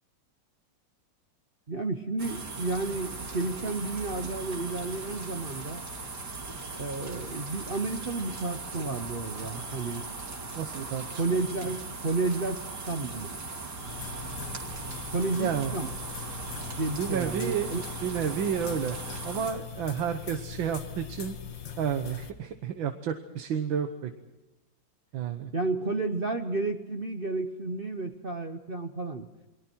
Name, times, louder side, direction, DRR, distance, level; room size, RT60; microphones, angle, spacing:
voice 1, 1.7-5.8 6.7-10.1 11.1-13.3 15.1-15.9 16.8-17.8 25.5-29.3, right 3 dB, 35° right, 6 dB, 1.0 m, -31 dB
sound 1, 2.2-19.5, right 3 dB, 60° right, 3.3 m, -39 dB
voice 2, 10.6-11.4 15.4-15.7 17.0-17.8 18.0-21.4 21.8-24.1 25.1-25.5, right 8 dB, 90° right, 7 dB, 1.9 m, -31 dB
sound 2, 13.8-22.3, left 8 dB, 75° left, 2.3 m, -41 dB
29.5 x 22.5 x 4.6 m, 1.0 s
omnidirectional pair, 2.1 m